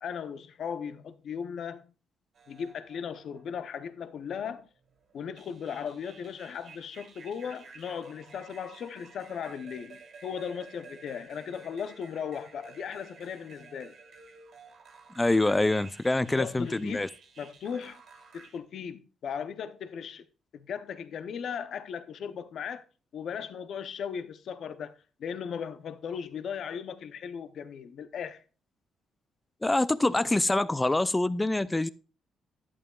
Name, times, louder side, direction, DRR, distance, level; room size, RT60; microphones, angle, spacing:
voice 1, 0.0-1.9 2.5-4.7 5.1-13.9 16.4-17.0 17.4-18.0 18.3-20.2 20.5-22.8 23.1-24.9 25.2-28.4, left 7 dB, 65° left, 0.7 m, -37 dB
sound 1, 2.3-4.0 4.8-18.6, right 4 dB, 60° right, 2.0 m, -52 dB
voice 2, 15.2-17.1 29.6-31.9, left 2 dB, 15° left, 0.4 m, -25 dB
11.0 x 8.6 x 2.3 m
cardioid pair, 90°, 0 cm